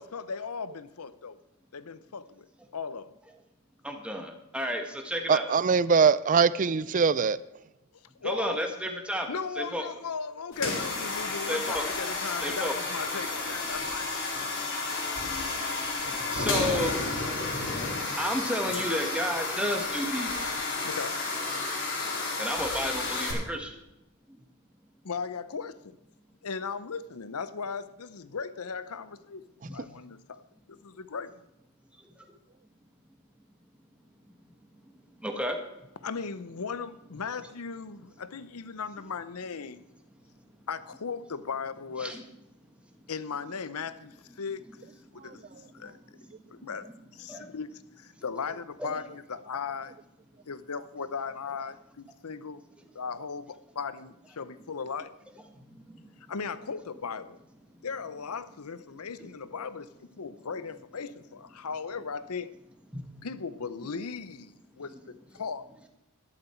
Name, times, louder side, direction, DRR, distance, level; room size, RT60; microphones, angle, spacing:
voice 1, 0.0-1.4 1.7-2.5 2.7-3.1 8.2-8.6 9.3-14.2 20.8-21.2 25.0-26.0 26.4-29.4 29.7-30.4 30.7-31.4 36.0-39.8 40.7-42.2 43.1-44.6 45.1-45.4 45.7-46.0 46.5-46.9 47.1-47.7 48.0-49.9 50.5-52.6 52.9-55.1 56.3-57.4 57.8-59.9 60.2-62.5 63.2-65.6, left 5 dB, 80° left, 0.7 m, -37 dB
voice 2, 3.8-5.5 8.2-9.3 9.6-9.8 11.5-11.8 12.4-12.7 16.3-17.0 18.2-20.5 22.4-23.7 24.3-24.4 29.7-29.8 35.2-35.6 42.0-42.2 45.3-45.8 46.2-46.3 46.6-46.7 47.3-47.5 48.8-48.9 55.5-56.1 59.2-59.3 62.9-63.0 63.9-64.0, equal, 5° right, 1.4 m, -32 dB
voice 3, 5.3-7.4, right 5 dB, 35° right, 0.4 m, -22 dB
sound 1, 10.5-23.3, left 3 dB, 55° left, 3.4 m, -31 dB
12.0 x 12.0 x 4.5 m
head